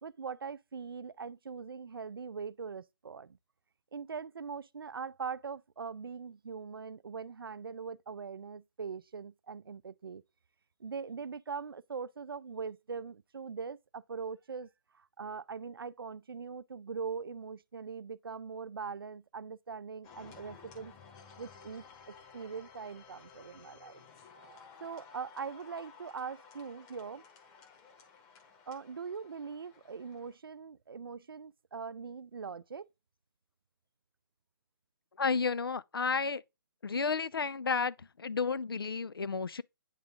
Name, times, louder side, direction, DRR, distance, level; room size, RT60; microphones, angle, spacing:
voice 1, 0.0-3.4 3.9-10.2 10.8-20.9 21.4-24.0 24.8-27.2 28.7-32.9, right 5 dB, 80° right, 0.4 m, -42 dB
sound 1, 20.0-30.3, left 5 dB, 25° left, 1.2 m, -55 dB
voice 2, 35.2-36.4 36.8-39.6, left 5 dB, 90° left, 0.4 m, -32 dB
8.9 x 3.6 x 3.6 m
figure-of-eight pair, 135°, 12 cm